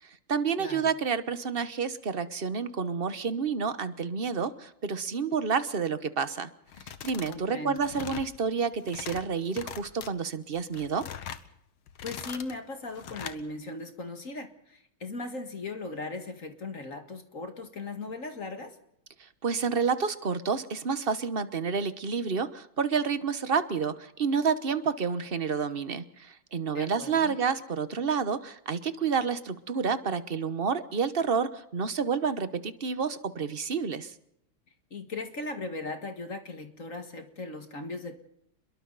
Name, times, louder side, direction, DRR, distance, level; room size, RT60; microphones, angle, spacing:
voice 1, 0.3-6.5 7.0-11.1 19.4-34.1, right 5 dB, 35° right, 12 dB, 1.0 m, -29 dB
sound 1, 6.7-7.4 7.7-8.3 8.7-9.2 9.5-10.1 10.6-11.4 11.9-12.5 12.9-13.4, left 9 dB, 85° left, 2.1 m, -41 dB
voice 2, 7.3-7.8 12.0-18.8 26.7-27.4 34.9-38.2, left 2 dB, 40° left, 6 dB, 2.2 m, -38 dB
30.0 x 22.0 x 4.1 m, 0.75 s
omnidirectional pair, 2.3 m